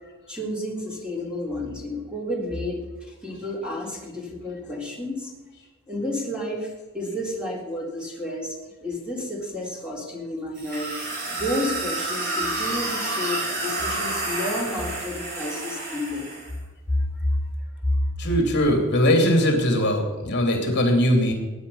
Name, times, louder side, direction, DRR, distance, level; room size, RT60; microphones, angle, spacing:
voice 1, 0.3-5.3 5.9-10.9 11.3-16.3 16.9-17.4 17.8-18.3, left 1 dB, 5° right, -2 dB, 3.6 m, -30 dB
sound 1, 10.5-16.5, right 2 dB, 50° right, 6.6 m, -29 dB
voice 2, 18.2-21.3, equal, 50° left, 3 dB, 2.9 m, -20 dB
20.5 x 9.7 x 5.6 m, 1.2 s
head